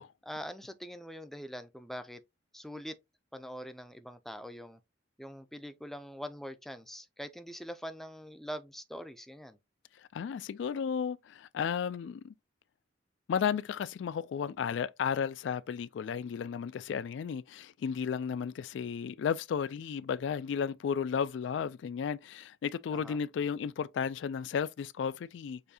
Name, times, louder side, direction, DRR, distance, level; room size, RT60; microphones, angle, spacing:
voice 1, 0.2-2.2 2.5-3.0 3.3-4.8 5.2-9.6 22.9-23.2, equal, ahead, 0.4 m, -43 dB
voice 2, 10.1-12.3 13.3-25.6, left 7 dB, 70° left, 0.3 m, -33 dB
6.7 x 2.6 x 2.7 m
head